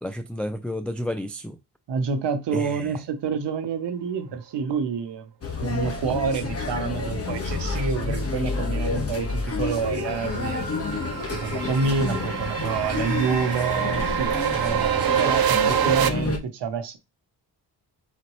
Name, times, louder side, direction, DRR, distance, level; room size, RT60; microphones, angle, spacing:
voice 1, 0.0-1.6 2.5-3.0, left 1 dB, 5° left, 0.3 m, -31 dB
voice 2, 1.9-5.3 5.6-10.7 11.3-17.0, right 5 dB, 80° right, 0.9 m, -28 dB
sound 1, 5.4-16.4, left 3 dB, 35° left, 1.2 m, -29 dB
sound 2, 9.5-16.1, right 9 dB, 60° right, 0.6 m, -26 dB
sound 3, 10.0-15.2, right 2 dB, 30° right, 2.0 m, -37 dB
4.2 x 3.8 x 3.1 m
cardioid pair, 105°, 41 cm